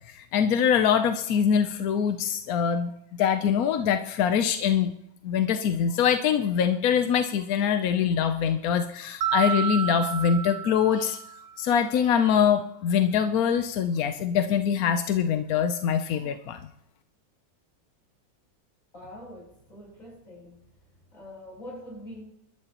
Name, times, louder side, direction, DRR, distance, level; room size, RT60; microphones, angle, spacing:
voice 1, 0.2-2.9 3.2-4.9 5.2-11.2 11.6-16.6, left 8 dB, 65° left, 8 dB, 1.0 m, -24 dB
Mallet percussion, 9.2-11.6, right 8 dB, 60° right, 1.0 m, -30 dB
voice 2, 18.9-20.6 21.1-22.2, left 1 dB, 45° left, -3 dB, 8.3 m, -44 dB
25.0 x 13.0 x 3.0 m, 0.78 s
omnidirectional pair, 2.0 m